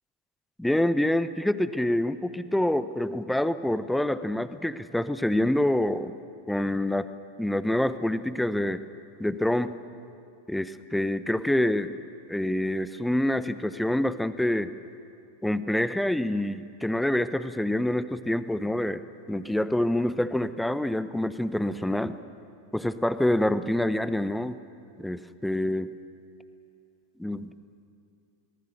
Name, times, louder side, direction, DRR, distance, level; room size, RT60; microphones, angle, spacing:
voice 1, 0.6-6.2 6.5-7.1 7.4-8.8 9.2-9.8 10.5-11.9 12.3-14.7 15.4-19.0 19.3-22.2 22.7-24.6 25.0-25.9 27.2-27.5, left 1 dB, 5° left, 13 dB, 0.9 m, -26 dB
28.0 x 19.0 x 6.6 m, 2.6 s
figure-of-eight pair, 90°, 0 cm